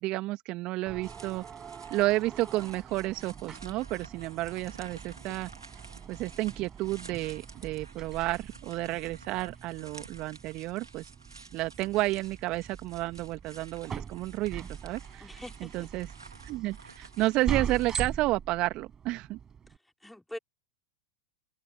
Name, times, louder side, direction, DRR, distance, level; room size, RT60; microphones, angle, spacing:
voice 1, 0.0-1.4 1.9-5.8 6.1-11.1 11.5-15.2 15.6-16.1 16.4-19.4, right 19 dB, 45° right, 2.0 m, -31 dB
sound 1, 0.9-19.8, right 7 dB, 25° right, 6.7 m, -42 dB
sound 2, 1.0-18.0, right 3 dB, 90° right, 4.3 m, -52 dB
voice 2, 15.2-15.9 20.0-20.4, left 1 dB, 5° left, 4.6 m, -43 dB
open air
figure-of-eight pair, 90°, 2 cm